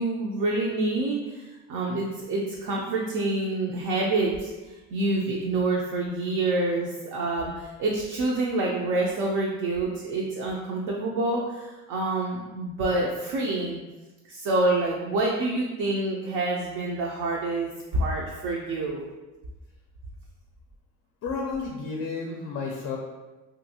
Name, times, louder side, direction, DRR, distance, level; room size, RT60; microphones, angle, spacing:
voice 1, 0.0-4.5 4.9-13.8 14.3-19.0, right 2 dB, 60° right, -2 dB, 0.5 m, -27 dB
voice 2, 21.2-23.0, left 4 dB, 40° left, 0 dB, 0.4 m, -31 dB
2.7 x 2.5 x 2.7 m, 1.1 s
cardioid pair, 130°, 35 cm